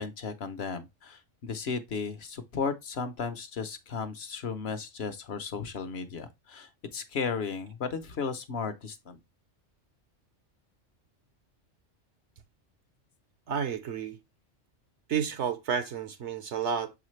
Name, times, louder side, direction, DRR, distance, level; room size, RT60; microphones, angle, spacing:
voice 1, 0.0-9.2, left 5 dB, 60° left, 1.0 m, -35 dB
voice 2, 13.5-14.2 15.1-16.9, right 7 dB, 70° right, 1.0 m, -31 dB
7.0 x 4.9 x 3.1 m
omnidirectional pair, 1.3 m